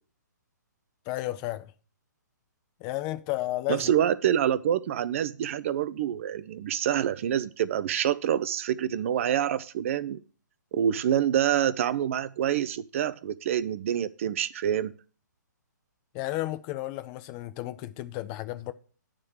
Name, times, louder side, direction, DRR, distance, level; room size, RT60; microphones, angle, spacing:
voice 1, 1.1-1.7 2.8-3.9 16.1-18.7, left 16 dB, 25° left, 0.5 m, -32 dB
voice 2, 3.7-10.2 10.7-14.9, right 10 dB, 45° right, 0.4 m, -26 dB
9.6 x 3.7 x 6.3 m
figure-of-eight pair, 130°, 10 cm